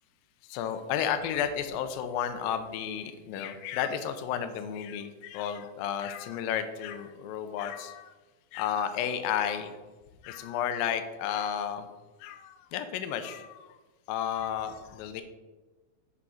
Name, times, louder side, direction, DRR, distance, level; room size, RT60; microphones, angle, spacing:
voice 1, 0.4-8.2 8.5-9.8 10.2-11.9 12.2-13.8 14.1-15.2, left 9 dB, 80° left, 8 dB, 2.3 m, -32 dB
8.5 x 5.1 x 6.4 m, 1.2 s
omnidirectional pair, 4.4 m